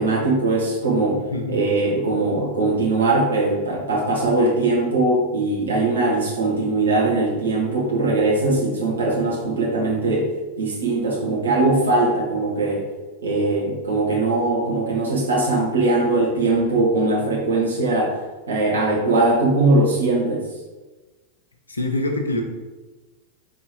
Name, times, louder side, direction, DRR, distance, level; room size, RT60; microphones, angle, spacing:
voice 1, 0.0-1.2 1.5-12.8 13.2-18.2 18.5-20.5, right 2 dB, 70° right, -4 dB, 1.7 m, -20 dB
voice 2, 21.7-22.4, left 2 dB, 80° left, 3 dB, 1.0 m, -24 dB
5.4 x 4.4 x 4.7 m, 1.2 s
figure-of-eight pair, 90°, 0 cm